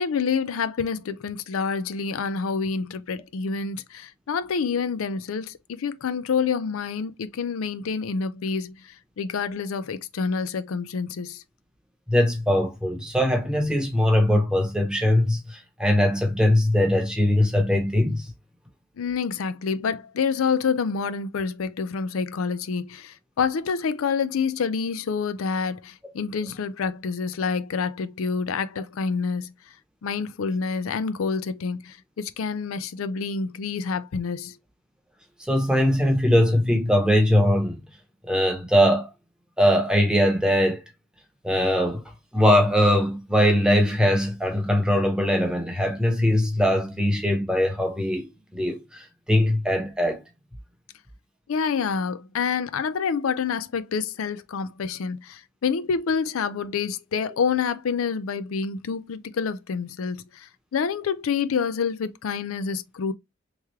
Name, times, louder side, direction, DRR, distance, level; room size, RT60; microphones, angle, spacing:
voice 1, 0.0-11.4 19.0-29.5 30.0-34.6 51.5-63.1, left 5 dB, 85° left, 0.4 m, -27 dB
voice 2, 12.1-18.3 35.4-37.8 38.3-39.1 39.6-40.8 41.4-42.0 42.3-49.0 49.3-50.2, equal, 5° right, 0.8 m, -21 dB
3.5 x 3.1 x 3.0 m
head